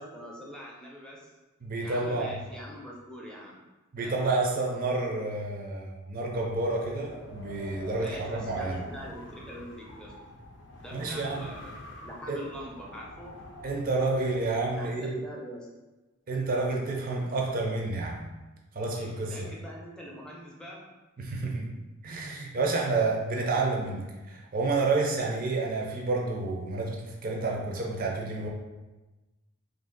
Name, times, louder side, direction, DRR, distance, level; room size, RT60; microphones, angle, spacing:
voice 1, 0.0-1.3 1.8-3.6 4.0-4.2 8.0-10.2 10.8-11.7 12.0-13.5 14.8-15.7 18.8-20.9, equal, 5° left, -3 dB, 0.5 m, -43 dB
voice 2, 1.6-2.4 3.9-8.8 10.9-11.5 12.3-12.5 13.6-15.2 16.3-18.2 18.7-19.5 21.2-21.7 22.0-28.5, right 3 dB, 45° right, -1 dB, 0.5 m, -29 dB
Wind, 6.2-14.9, left 1 dB, 55° left, 0.5 m, -46 dB
2.7 x 2.6 x 3.8 m, 1.1 s
head